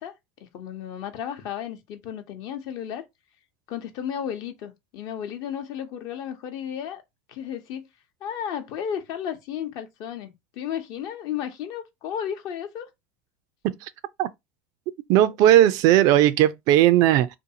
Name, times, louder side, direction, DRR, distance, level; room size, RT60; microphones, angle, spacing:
voice 1, 0.0-3.1 3.7-7.0 7.3-7.9 8.2-12.9, left 9 dB, 60° left, 0.8 m, -33 dB
voice 2, 15.1-17.3, right 12 dB, 55° right, 0.3 m, -17 dB
2.6 x 2.4 x 2.7 m
hypercardioid pair, 100°, 7 cm